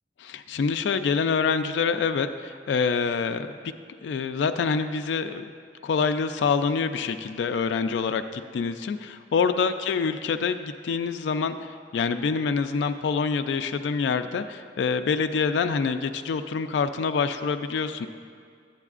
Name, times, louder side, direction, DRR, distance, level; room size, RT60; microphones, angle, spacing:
voice 1, 0.2-3.5 4.0-5.4 5.8-18.1, left 5 dB, 75° left, 9 dB, 0.3 m, -26 dB
10.5 x 9.0 x 2.4 m, 2.2 s
head